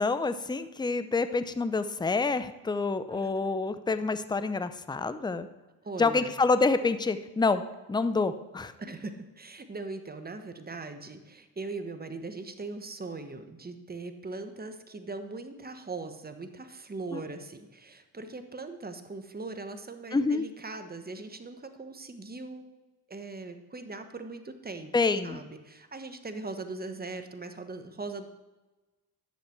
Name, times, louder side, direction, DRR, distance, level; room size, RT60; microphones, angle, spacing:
voice 1, 0.0-5.5 6.0-7.6 7.9-8.7 17.1-17.2 20.1-20.5 24.9-25.4, left 3 dB, 10° left, 12 dB, 0.6 m, -27 dB
voice 2, 3.1-3.5 5.8-6.3 8.8-22.7 23.1-24.9 25.2-28.3, right 3 dB, 20° right, 8 dB, 1.2 m, -40 dB
10.5 x 7.0 x 4.5 m, 1.1 s
hypercardioid pair, 45°, 50 cm